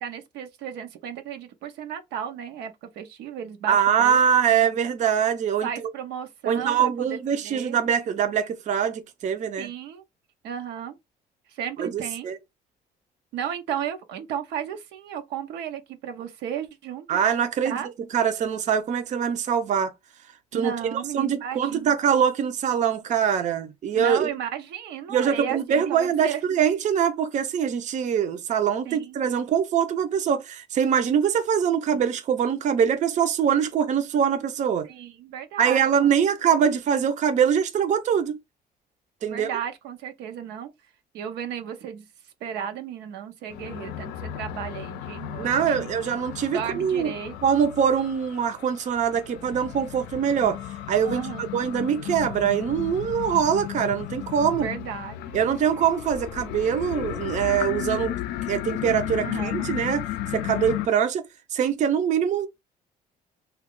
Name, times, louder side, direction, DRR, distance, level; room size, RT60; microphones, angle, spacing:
voice 1, 0.0-4.2 4.7-4.8 5.6-7.8 9.6-10.0 10.4-11.0 11.5-12.3 13.3-17.2 17.6-17.9 20.5-21.9 23.9-26.4 28.8-29.3 31.9-32.0 34.8-36.5 39.2-40.7 41.1-42.0 42.4-45.9 46.5-47.3 51.0-51.4 54.6-55.4 59.2-59.7, right 9 dB, 85° right, 0.6 m, -34 dB
voice 2, 3.7-5.7 6.5-9.7 11.8-12.4 17.1-17.8 18.1-19.9 20.5-20.7 21.1-24.3 25.1-34.9 35.6-38.4 39.2-39.5 45.4-47.1 47.4-50.6 50.9-54.7 55.3-58.2 58.5-60.0 60.3-61.3 61.5-62.5, right 8 dB, 45° right, 0.5 m, -23 dB
sound 1, 43.5-60.9, left 12 dB, 85° left, 0.4 m, -34 dB
2.8 x 2.3 x 3.6 m
cardioid pair, 110°, 17 cm